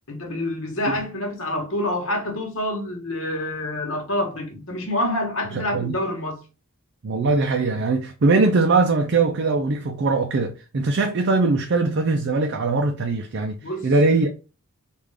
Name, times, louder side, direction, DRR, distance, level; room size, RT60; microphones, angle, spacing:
voice 1, 0.1-6.4 13.6-13.9, left 1 dB, 65° left, 1.2 m, -27 dB
voice 2, 5.5-5.9 7.0-14.3, right 3 dB, 55° right, 0.5 m, -21 dB
3.6 x 2.5 x 3.2 m
head